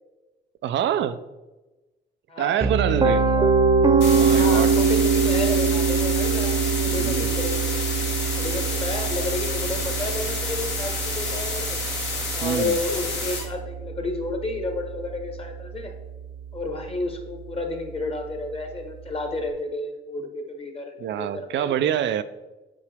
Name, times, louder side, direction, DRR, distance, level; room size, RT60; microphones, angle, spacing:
voice 1, 0.6-1.2 2.4-3.2 4.1-4.7 7.0-7.3 12.4-12.8 21.0-22.2, right 10 dB, 70° right, 12 dB, 0.4 m, -25 dB
voice 2, 2.3-3.5 4.3-11.8 12.3-15.9 16.5-21.7, left 2 dB, 30° left, 4 dB, 1.4 m, -31 dB
Piano, 2.6-14.5, right 5 dB, 25° right, 0.8 m, -23 dB
sound 1, 4.0-13.4, left 3 dB, 65° left, 2.2 m, -30 dB
8.4 x 4.8 x 3.5 m, 1.1 s
cardioid pair, 90°, 20 cm